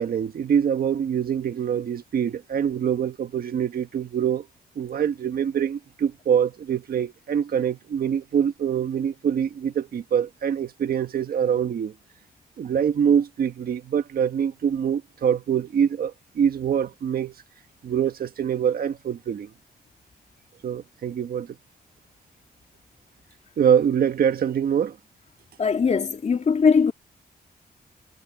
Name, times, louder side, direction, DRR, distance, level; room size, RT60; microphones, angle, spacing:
voice 1, 0.0-4.5 4.7-11.9 12.6-17.3 17.8-19.5 20.6-21.5 23.6-25.0, right 8 dB, 70° right, 1.6 m, -24 dB
voice 2, 25.6-26.9, left 5 dB, 45° left, 3.2 m, -20 dB
wide cardioid pair, 120°, 16 cm